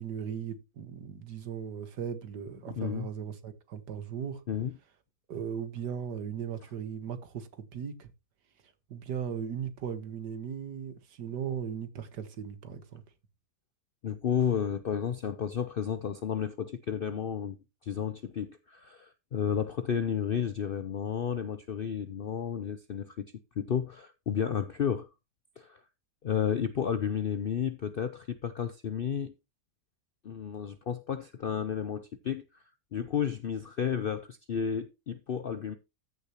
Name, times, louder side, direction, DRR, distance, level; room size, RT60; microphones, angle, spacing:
voice 1, 0.0-4.4 5.3-8.1 8.9-13.0, right 8 dB, 85° right, 1.9 m, -37 dB
voice 2, 2.7-3.1 4.5-4.7 14.0-17.6 17.8-23.3 23.6-25.1 25.6-25.8 26.2-29.3 30.2-32.4 32.9-35.7, left 8 dB, 65° left, 0.5 m, -32 dB
14.0 x 6.6 x 3.0 m
omnidirectional pair, 1.7 m